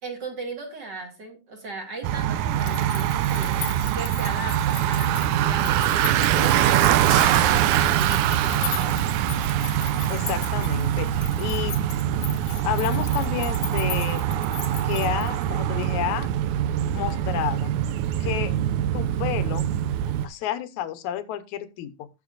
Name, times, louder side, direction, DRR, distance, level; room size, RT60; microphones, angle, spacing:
voice 1, 0.0-9.0, right 3 dB, 40° right, 2 dB, 2.5 m, -38 dB
Bicycle, 2.0-20.3, right 11 dB, 85° right, 2.1 m, -23 dB
sound 1, 2.5-15.6, left 10 dB, 60° left, 1.9 m, -38 dB
sound 2, 7.1-9.3 9.6-9.7 10.0-10.1, right 4 dB, 55° right, 2.9 m, -36 dB
voice 2, 10.1-11.8 12.6-14.2 14.8-16.3 16.9-17.7 18.2-18.6 18.9-19.7 20.2-22.1, left 12 dB, 75° left, 12 dB, 2.2 m, -30 dB
18.0 x 6.7 x 2.4 m, 0.27 s
omnidirectional pair, 3.4 m